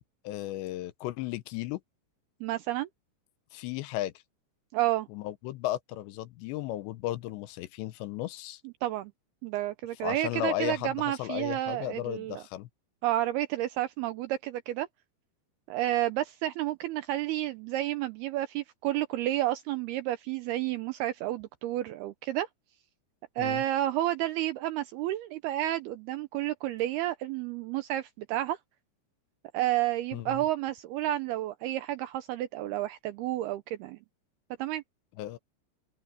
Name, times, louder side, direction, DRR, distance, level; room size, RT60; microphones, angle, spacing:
voice 1, 0.2-1.8 3.5-4.1 5.1-8.6 10.0-12.7 23.4-23.6 30.1-30.3 35.2-35.4, left 14 dB, 80° left, 3.0 m, -35 dB
voice 2, 2.4-2.9 4.7-5.1 8.6-9.1 9.4-12.4 13.0-14.9 15.7-22.5 23.4-28.6 29.5-34.0 34.6-34.8, right 14 dB, 85° right, 2.3 m, -31 dB
open air
omnidirectional pair, 5.2 m